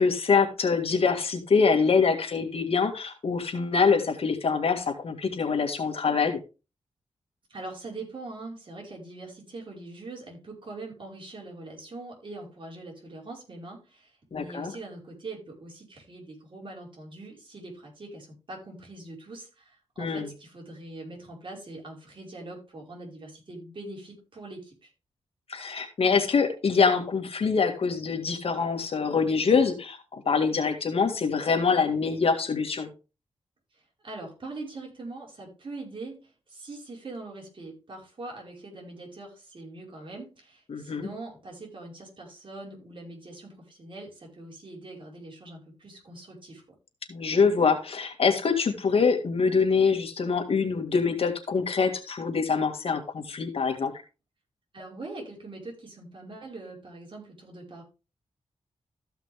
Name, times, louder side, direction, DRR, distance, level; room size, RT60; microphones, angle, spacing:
voice 1, 0.0-6.4 14.3-14.7 20.0-20.3 25.5-32.9 40.7-41.1 47.1-53.9, left 5 dB, 60° left, 5 dB, 2.0 m, -24 dB
voice 2, 7.5-24.9 33.7-46.6 54.7-57.8, right 2 dB, 50° right, -1 dB, 5.3 m, -42 dB
14.5 x 5.8 x 3.5 m, 0.30 s
cardioid pair, 80°, 11 cm